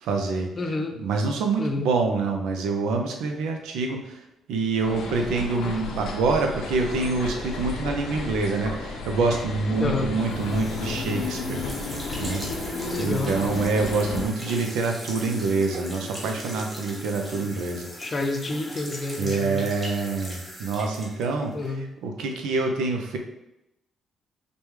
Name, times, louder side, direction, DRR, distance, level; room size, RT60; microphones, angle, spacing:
voice 1, 0.0-0.5 1.0-4.2 4.5-11.6 12.2-12.4 13.0-17.9 19.2-21.6 22.0-23.2, right 4 dB, 90° right, 3 dB, 0.6 m, -26 dB
voice 2, 0.6-1.0 1.6-1.9 9.8-10.2 12.9-13.5 17.4-17.5 18.0-19.7 21.5-21.9, left 3 dB, 35° left, 4 dB, 0.6 m, -29 dB
sound 1, 4.8-14.3, left 3 dB, 80° left, 0.7 m, -32 dB
sound 2, 10.3-21.7, equal, 15° right, 1.3 m, -39 dB
5.0 x 2.2 x 3.1 m, 0.87 s
cardioid pair, 90°, 0 cm